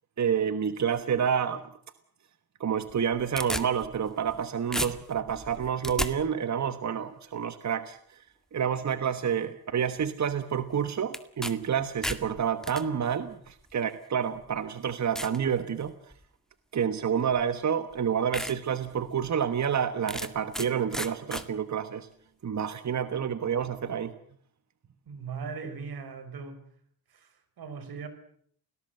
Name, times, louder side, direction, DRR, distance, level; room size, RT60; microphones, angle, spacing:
voice 1, 0.2-1.6 2.6-8.2 8.5-15.9 16.7-22.1 22.4-24.1, right 7 dB, 50° right, 1.3 m, -29 dB
sound 1, 2.9-4.4 4.7-6.1 11.1-11.5 11.8-12.8 13.7-13.8 14.4-14.5 15.2-15.4 15.9-16.2 17.4-17.5 17.9-18.0 18.3-18.5 19.0-19.1 20.1-20.7 20.9-21.4, equal, ahead, 2.0 m, -33 dB
voice 2, 25.1-26.6 27.1-28.1, right 5 dB, 80° right, 4.8 m, -39 dB
29.0 x 19.0 x 7.8 m
cardioid pair, 100°, 36 cm